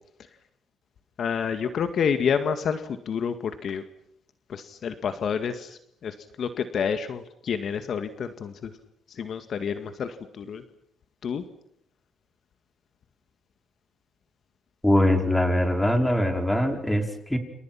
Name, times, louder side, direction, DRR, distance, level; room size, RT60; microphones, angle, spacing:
voice 1, 1.2-3.8 4.5-8.7 9.1-10.6 11.2-11.4, left 7 dB, 60° left, 9 dB, 2.0 m, -29 dB
voice 2, 14.8-17.4, left 1 dB, 5° left, 5 dB, 5.1 m, -22 dB
29.0 x 29.0 x 6.0 m, 0.74 s
cardioid pair, 90°, 0 cm